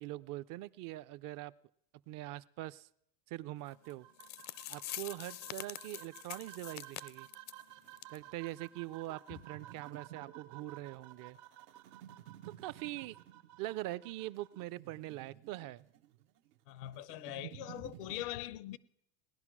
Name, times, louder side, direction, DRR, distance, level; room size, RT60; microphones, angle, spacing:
voice 1, 0.0-1.5 2.1-2.9 3.3-4.1 4.7-7.3 8.1-11.4 12.6-13.2 13.6-15.9, right 16 dB, 45° right, 0.5 m, -43 dB
sound 1, 3.7-14.6, right 15 dB, 65° right, 1.3 m, -55 dB
sound 2, 3.9-4.0 4.2-7.6 8.0-8.2 8.5-8.6 9.1-9.2, left 14 dB, 40° left, 0.5 m, -45 dB
sound 3, 7.6-18.3, right 13 dB, 85° right, 0.9 m, -54 dB
voice 2, 16.7-18.8, left 14 dB, 80° left, 0.8 m, -42 dB
18.5 x 11.0 x 6.1 m
supercardioid pair, 115°, 46 cm